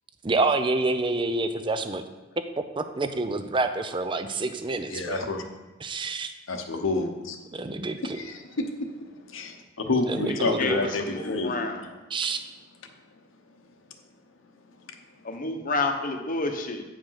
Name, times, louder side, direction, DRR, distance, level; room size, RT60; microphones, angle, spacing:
voice 1, 0.2-2.0 2.8-5.2 5.8-6.3 7.5-8.2 10.1-10.8 12.1-12.4, right 3 dB, 25° right, 9 dB, 0.5 m, -27 dB
voice 2, 4.9-5.4 6.5-7.4 8.0-12.0 14.9-15.0, left 2 dB, 80° left, 5 dB, 1.0 m, -29 dB
voice 3, 10.3-10.8 11.1-11.8 15.2-16.8, left 3 dB, 45° left, 5 dB, 0.9 m, -29 dB
9.1 x 5.0 x 5.7 m, 1.2 s
head